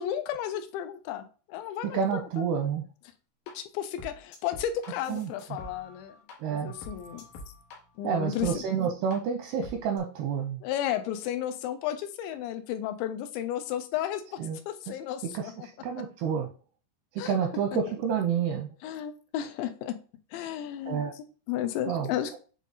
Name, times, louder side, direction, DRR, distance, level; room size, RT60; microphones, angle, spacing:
voice 1, 0.0-2.0 2.4-2.5 3.5-6.2 6.5-7.2 8.0-8.6 10.6-14.4 14.7-15.7 17.2-17.4 18.8-20.0 20.3-22.4, left 11 dB, 80° left, 9 dB, 2.9 m, -33 dB
voice 2, 1.9-2.8 5.1-5.3 6.4-6.7 8.0-10.6 14.4-14.6 15.3-15.5 15.8-16.5 17.2-18.7 20.9-21.1 21.9-22.1, right 7 dB, 80° right, 3 dB, 2.3 m, -29 dB
sound 1, 3.5-3.6 4.0-6.3 6.6-7.8 8.4-8.5 9.1-9.2 9.6-10.0, left 1 dB, 65° left, 2.6 m, -45 dB
7.3 x 3.8 x 4.0 m, 0.37 s
omnidirectional pair, 5.3 m